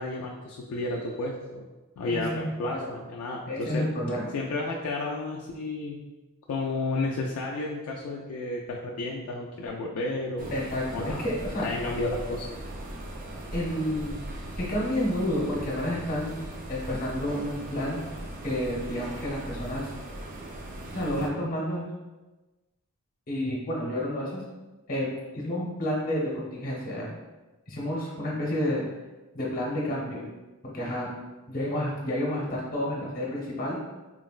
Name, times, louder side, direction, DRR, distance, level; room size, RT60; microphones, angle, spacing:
voice 1, 0.0-1.7 2.0-3.9 4.3-6.0 6.5-10.6 10.9-11.2 11.6-12.5, left 2 dB, 70° left, -2 dB, 0.3 m, -32 dB
voice 2, 2.1-2.9 3.5-4.3 10.5-11.6 13.5-14.2 14.6-16.4 16.7-18.0 18.4-19.9 20.9-21.9 23.3-24.4 24.9-27.1 27.7-28.8 29.3-30.2 30.6-31.1 31.5-33.8, left 1 dB, 40° left, -4 dB, 0.8 m, -30 dB
sound 1, 10.4-21.3, right 1 dB, 40° right, 0.3 m, -39 dB
3.8 x 2.1 x 2.3 m, 1.1 s
head